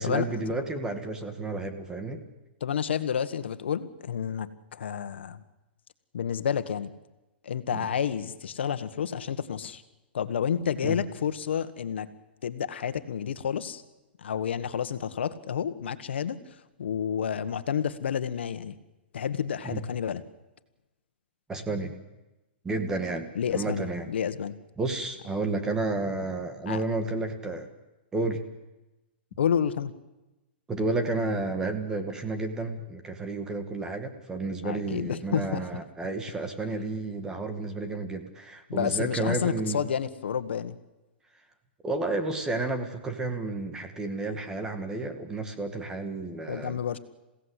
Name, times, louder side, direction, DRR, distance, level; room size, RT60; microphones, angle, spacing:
voice 1, 0.0-2.2 7.7-7.9 10.8-11.0 19.6-19.8 21.5-21.9 22.6-24.1 24.8-27.7 28.1-28.4 30.7-39.8 41.8-46.8, right 2 dB, 10° right, 7 dB, 2.0 m, -31 dB
voice 2, 2.6-5.4 6.1-6.9 7.4-9.8 10.1-12.1 12.4-13.8 14.2-16.4 16.8-18.8 19.1-20.2 23.4-24.5 26.7-26.8 29.4-29.9 34.6-35.6 38.7-40.8 46.5-47.0, left 8 dB, 80° left, 11 dB, 1.6 m, -30 dB
27.5 x 17.0 x 8.3 m, 1.0 s
hypercardioid pair, 155°, 6 cm